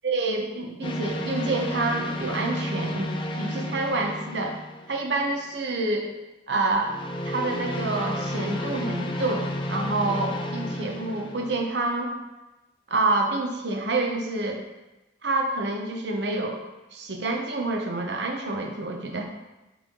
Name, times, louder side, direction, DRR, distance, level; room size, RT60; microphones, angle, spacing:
voice 1, 0.0-4.6 4.9-6.1 6.5-6.9 7.3-12.1 12.9-14.6 15.2-16.6 16.9-19.2, right 2 dB, 70° right, 2 dB, 0.8 m, -27 dB
sound 1, 0.8-5.3 6.8-11.6, left 1 dB, 25° left, 0.4 m, -32 dB
7.5 x 3.5 x 3.7 m, 1.1 s
head